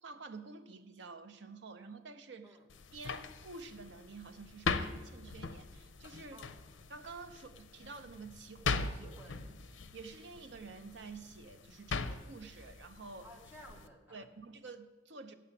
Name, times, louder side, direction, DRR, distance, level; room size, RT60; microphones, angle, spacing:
voice 1, 0.0-2.6 2.9-6.5 6.9-9.1 9.8-13.3 14.1-15.3, right 4 dB, 70° right, 8 dB, 0.7 m, -49 dB
sound 1, 2.7-13.9, left 4 dB, 80° left, 0.5 m, -41 dB
voice 2, 6.3-6.6 8.9-9.5 13.2-14.3, equal, 10° right, -1 dB, 1.2 m, -55 dB
8.6 x 6.7 x 7.1 m, 1.2 s
head